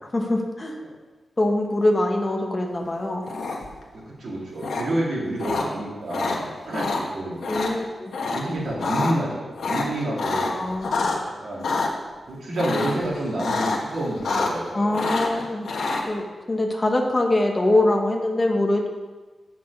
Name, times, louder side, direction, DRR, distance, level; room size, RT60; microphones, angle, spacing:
voice 1, 0.1-0.8 1.4-3.2 7.5-8.1 10.4-11.0 14.7-15.7 16.1-18.9, left 1 dB, 25° left, 2 dB, 1.2 m, -23 dB
sound 1, 3.3-3.8 4.6-4.8 5.4-5.6 6.1-6.4 6.7-7.0 7.4-7.7 8.1-8.4 8.7-9.1 9.6-11.2 11.6-11.9 12.6-13.0 13.4-13.8 14.1-14.7 14.9-16.0, left 3 dB, 90° left, 1.3 m, -26 dB
voice 2, 3.9-7.4 8.2-10.5 11.2-11.7 12.3-15.1, right 1 dB, 65° right, -5 dB, 2.9 m, -29 dB
7.5 x 6.1 x 7.1 m, 1.3 s
wide cardioid pair, 150°, 0 cm